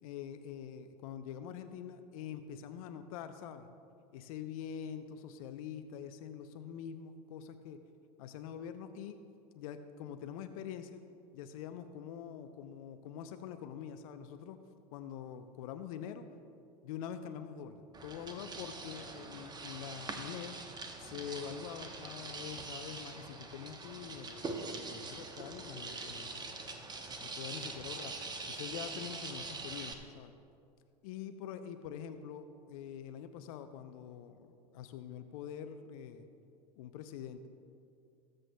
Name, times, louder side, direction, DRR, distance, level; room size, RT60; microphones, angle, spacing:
voice 1, 0.0-3.7 4.1-7.8 8.2-9.2 9.6-11.0 11.3-14.6 14.9-16.3 16.8-20.6 21.0-26.6 27.2-28.1 28.5-30.3 31.0-36.3 36.8-37.5, left 8 dB, 60° left, 9 dB, 0.6 m, -45 dB
sound 1, 17.9-29.9, right 3 dB, 20° right, 1.0 m, -44 dB
19.5 x 7.7 x 2.3 m, 2.4 s
hypercardioid pair, 85°, 21 cm